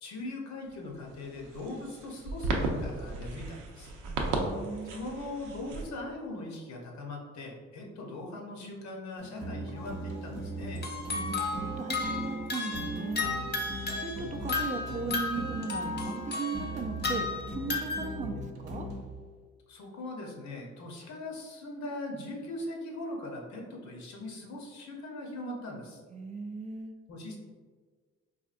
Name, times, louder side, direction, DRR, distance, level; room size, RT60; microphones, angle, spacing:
voice 1, 0.0-3.9 4.8-10.8 19.7-26.0 27.1-27.4, left 2 dB, 65° left, 0 dB, 0.8 m, -40 dB
sound 1, 0.6-5.9, right 2 dB, 85° right, 0.6 m, -35 dB
voice 2, 4.1-5.0 10.9-18.9 26.1-27.0, right 4 dB, 25° right, 5 dB, 0.3 m, -38 dB
sound 2, 9.2-19.2, right 1 dB, 50° right, 0.8 m, -39 dB
sound 3, 9.8-9.9 10.8-18.2, left 3 dB, 35° left, 0.6 m, -34 dB
4.1 x 2.6 x 2.5 m, 1.5 s
cardioid pair, 90°, 30 cm